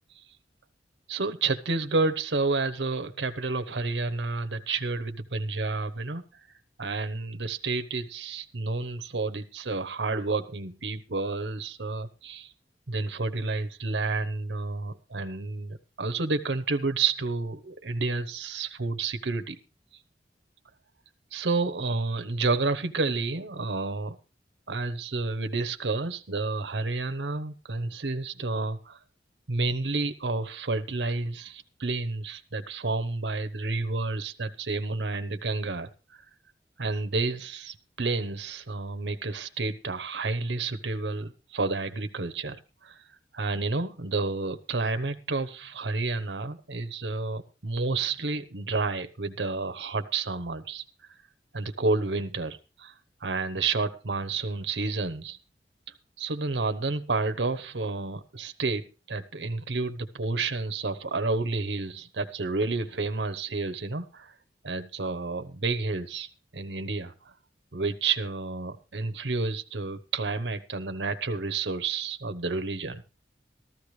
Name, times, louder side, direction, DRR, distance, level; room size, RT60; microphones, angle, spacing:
voice 1, 1.1-6.2 6.8-12.5 12.9-19.6 21.3-24.2 24.7-29.0 29.5-36.2 36.8-42.6 42.8-43.0 43.3-50.8 51.5-52.9 53.2-55.4 56.2-64.3 64.6-67.3 67.7-73.0, right 3 dB, 85° right, 9 dB, 1.0 m, -30 dB
14.0 x 13.5 x 3.2 m, 0.33 s
head